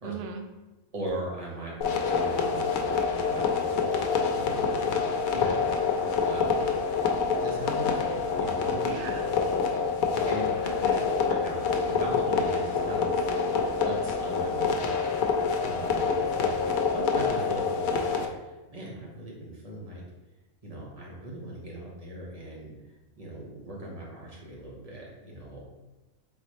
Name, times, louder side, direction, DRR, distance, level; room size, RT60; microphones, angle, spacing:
voice 1, 0.0-0.5 8.8-9.4 10.6-11.1, right 6 dB, 75° right, 5 dB, 0.5 m, -38 dB
voice 2, 0.9-5.7 6.2-6.7 7.4-8.9 9.6-10.5 11.3-13.1 13.8-15.3 15.6-20.0 20.6-25.6, right 1 dB, 30° right, -4 dB, 1.0 m, -39 dB
sound 1, 1.8-18.3, left 5 dB, 75° left, 1.0 m, -27 dB
3.8 x 3.8 x 3.1 m, 1.1 s
omnidirectional pair, 1.5 m